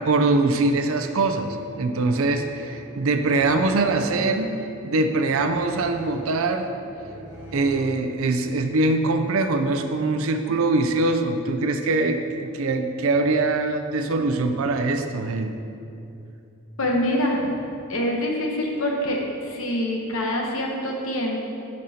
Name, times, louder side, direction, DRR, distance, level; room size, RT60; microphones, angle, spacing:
voice 1, 0.0-6.6 7.5-15.6, right 3 dB, 65° right, 7 dB, 0.5 m, -23 dB
sound 1, 0.9-8.4, equal, 10° right, 1.7 m, -41 dB
voice 2, 16.8-17.6 17.9-21.5, left 1 dB, 65° left, 0 dB, 1.0 m, -25 dB
10.5 x 5.3 x 2.8 m, 2.7 s
head